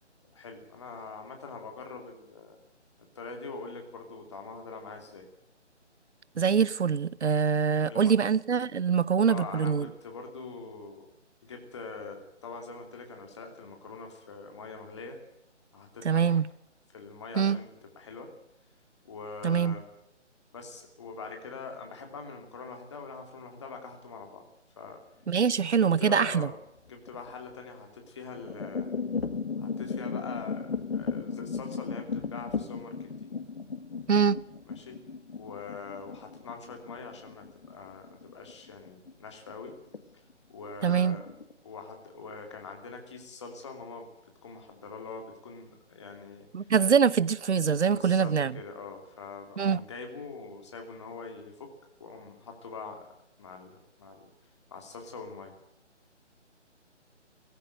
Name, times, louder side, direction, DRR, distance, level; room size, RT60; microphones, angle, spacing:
voice 1, 0.3-2.6 3.1-5.3 7.9-8.1 9.3-11.1 11.4-15.2 15.7-16.4 16.9-18.3 19.0-19.8 20.5-24.4 24.8-25.0 25.8-26.6 26.9-28.9 29.6-33.1 34.7-35.0 35.3-39.8 40.5-41.3 41.6-46.5 47.9-51.7 52.0-53.1 53.4-54.3 54.7-55.5, left 4 dB, 25° left, 2.9 m, -43 dB
voice 2, 6.4-9.9 16.0-16.5 17.4-17.6 19.4-19.7 25.3-26.5 34.1-34.4 40.8-41.2 46.5-48.5 49.6-49.8, right 6 dB, 70° right, 0.8 m, -24 dB
sound 1, 25.2-26.3 26.9-27.3 28.1-39.1 39.5-40.0 40.3-40.4 40.9-41.5, left 5 dB, 55° left, 2.0 m, -36 dB
18.5 x 15.5 x 9.0 m
hypercardioid pair, 175°, 36 cm